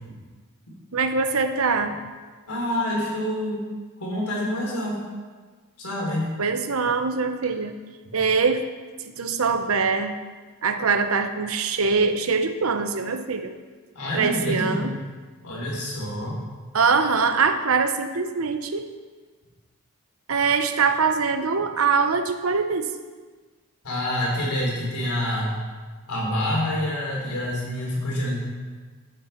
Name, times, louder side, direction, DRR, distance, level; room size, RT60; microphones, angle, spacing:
voice 1, 0.9-1.9 6.4-7.7 8.1-8.6 9.2-10.1 10.6-13.5 14.1-14.9 16.7-18.8 20.3-22.9, right 5 dB, 70° right, 8 dB, 0.8 m, -23 dB
voice 2, 2.5-3.6 4.0-5.0 5.8-6.3 8.0-8.1 13.9-14.9 15.4-16.4 23.8-25.5 26.1-28.4, left 1 dB, 90° left, -3 dB, 3.6 m, -27 dB
12.5 x 7.9 x 4.4 m, 1.4 s
head